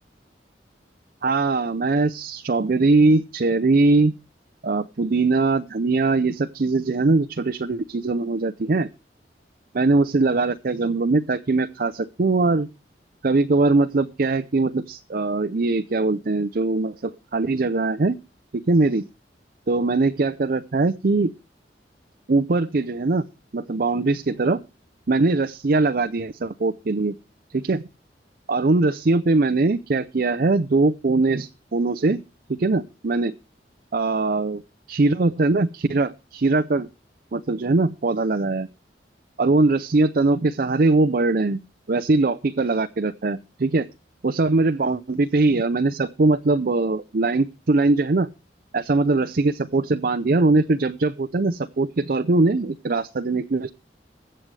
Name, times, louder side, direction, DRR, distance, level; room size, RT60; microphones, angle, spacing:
voice 1, 1.2-4.1 4.6-8.9 9.7-12.7 13.2-18.2 18.5-19.1 19.7-21.3 22.3-23.2 23.5-24.6 25.1-27.2 27.5-27.8 28.5-32.2 32.5-33.3 33.9-34.6 34.9-36.9 37.3-38.7 39.4-41.6 41.9-43.9 44.2-48.3 48.7-53.7, right 3 dB, 55° right, 10 dB, 0.6 m, -21 dB
22.0 x 7.7 x 3.3 m, 0.30 s
head